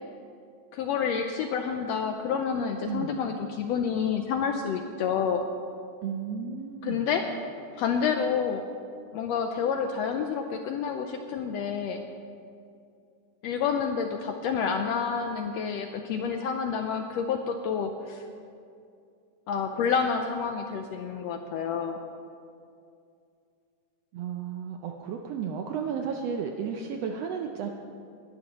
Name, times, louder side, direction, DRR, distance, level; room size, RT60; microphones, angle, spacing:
voice 1, 0.7-5.4 6.8-7.2 7.8-8.6 9.1-12.0 13.4-18.2 19.5-22.0, left 6 dB, 80° left, 5 dB, 1.5 m, -29 dB
voice 2, 2.9-3.2 6.0-7.0 24.1-27.7, right 7 dB, 75° right, 3 dB, 1.5 m, -33 dB
21.0 x 11.0 x 3.0 m, 2.5 s
omnidirectional pair, 3.5 m